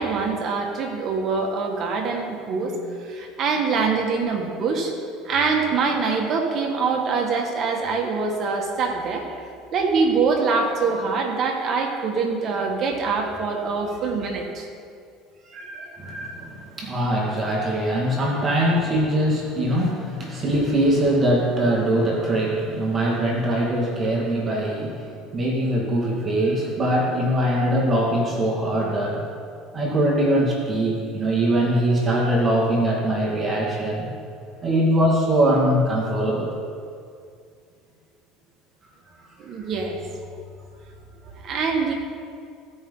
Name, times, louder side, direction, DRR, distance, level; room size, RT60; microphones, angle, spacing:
voice 1, 0.0-4.9 5.2-14.7 15.5-16.0 39.4-40.0 41.2-41.9, right 4 dB, 50° right, 1 dB, 1.9 m, -24 dB
voice 2, 16.0-29.3 29.7-34.1 34.6-36.6, right 1 dB, 30° right, -3 dB, 2.1 m, -22 dB
16.0 x 5.5 x 4.0 m, 2.3 s
supercardioid pair, 90°, 0 cm